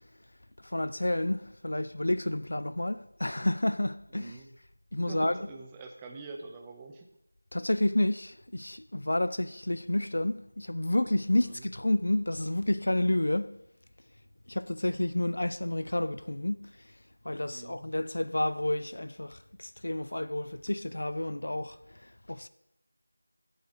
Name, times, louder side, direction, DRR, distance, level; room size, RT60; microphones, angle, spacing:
voice 1, 0.6-4.4 4.9-5.5 7.5-13.6 14.5-16.9 17.2-22.5, left 1 dB, 65° left, 0.4 m, -30 dB
voice 2, 4.1-4.5 5.1-7.1 11.4-11.7 17.5-17.8, right 3 dB, 10° right, 0.6 m, -45 dB
15.0 x 8.1 x 3.7 m
figure-of-eight pair, 170°, 0 cm